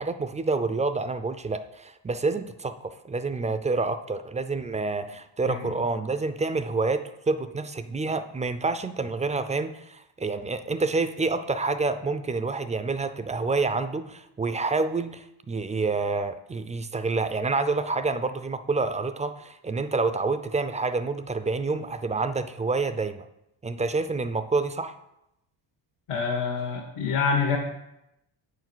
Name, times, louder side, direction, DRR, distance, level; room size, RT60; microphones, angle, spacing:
voice 1, 0.0-23.3 23.6-25.0, right 3 dB, 15° right, 11 dB, 0.3 m, -28 dB
voice 2, 26.1-27.6, left 5 dB, 85° left, -2 dB, 1.5 m, -26 dB
8.1 x 4.7 x 6.1 m, 0.86 s
cardioid pair, 110°, 49 cm